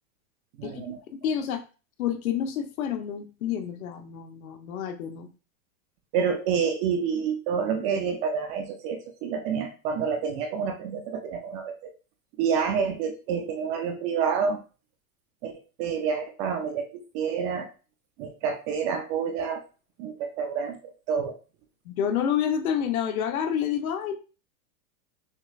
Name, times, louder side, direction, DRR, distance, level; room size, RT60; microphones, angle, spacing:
voice 1, 0.6-1.0 6.1-11.8 12.4-14.6 15.4-15.5 15.8-17.7 18.2-19.6 20.0-21.4, right 6 dB, 25° right, 5 dB, 0.4 m, -28 dB
voice 2, 1.2-1.6 2.0-5.3 21.9-24.2, left 8 dB, 75° left, 7 dB, 1.1 m, -28 dB
6.4 x 3.1 x 2.4 m, 0.34 s
supercardioid pair, 150°, 43 cm